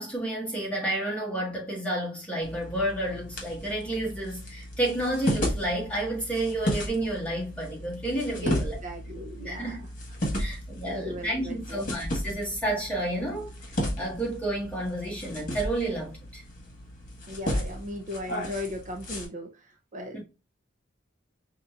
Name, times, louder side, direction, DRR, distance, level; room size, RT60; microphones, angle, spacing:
voice 1, 0.0-8.8 9.4-9.9 10.4-13.5 14.0-16.4 20.1-20.2, right 1 dB, 5° left, 1.5 m, -30 dB
sound 1, 2.4-19.3, equal, 40° left, 1.5 m, -34 dB
voice 2, 8.4-9.9 10.4-10.6 10.8-11.8 17.3-20.2, left 1 dB, 35° right, 0.5 m, -37 dB
5.1 x 2.8 x 2.4 m
head